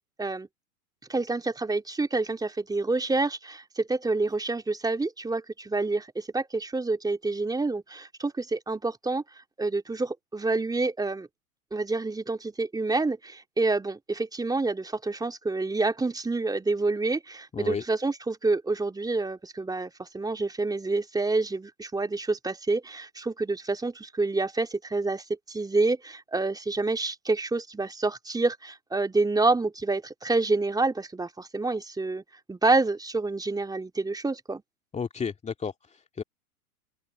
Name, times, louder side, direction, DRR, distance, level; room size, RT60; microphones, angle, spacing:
voice 1, 1.1-9.2 9.6-11.3 11.7-32.2 32.5-34.6, right 3 dB, 10° right, 3.4 m, -28 dB
voice 2, 17.5-17.8 34.9-36.2, left 6 dB, 15° left, 2.2 m, -33 dB
open air
figure-of-eight pair, 100°, 44 cm